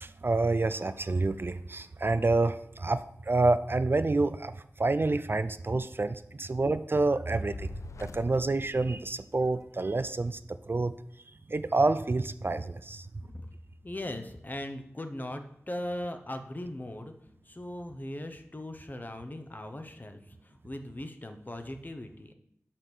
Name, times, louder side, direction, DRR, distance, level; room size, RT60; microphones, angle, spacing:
voice 1, 0.0-7.7 8.0-10.9 11.5-13.1, right 3 dB, 45° right, 13 dB, 0.4 m, -28 dB
Fire, 7.3-9.8, left 4 dB, 70° left, 0.3 m, -45 dB
voice 2, 13.8-17.1 17.4-22.3, left 1 dB, 35° left, 7 dB, 0.9 m, -39 dB
5.7 x 5.1 x 6.2 m, 0.73 s
cardioid pair, 40°, 5 cm